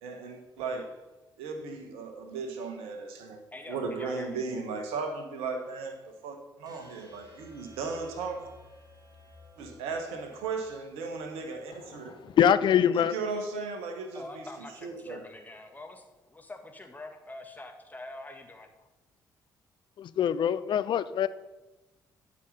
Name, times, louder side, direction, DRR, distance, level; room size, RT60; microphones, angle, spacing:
voice 1, 0.0-1.1 1.4-8.5 9.6-12.1 12.9-15.2, right 4 dB, 65° right, 5 dB, 1.3 m, -36 dB
voice 2, 3.5-4.3 14.1-18.7, left 2 dB, 15° left, 4 dB, 1.7 m, -45 dB
sound 1, 6.6-12.7, equal, 35° right, 2.8 m, -56 dB
voice 3, 12.2-13.1 20.0-21.3, left 9 dB, 50° left, 14 dB, 0.5 m, -24 dB
11.5 x 5.4 x 5.6 m, 1.1 s
figure-of-eight pair, 40°, 10 cm